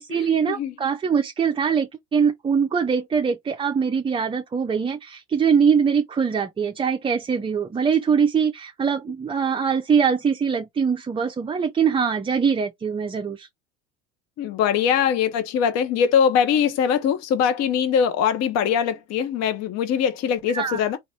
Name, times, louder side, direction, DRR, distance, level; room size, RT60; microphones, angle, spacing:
voice 1, 0.0-13.5 20.5-20.8, right 6 dB, 15° right, 0.5 m, -22 dB
voice 2, 14.4-21.0, left 8 dB, 45° left, 0.9 m, -22 dB
4.0 x 2.5 x 4.1 m
hypercardioid pair, 85°, 36 cm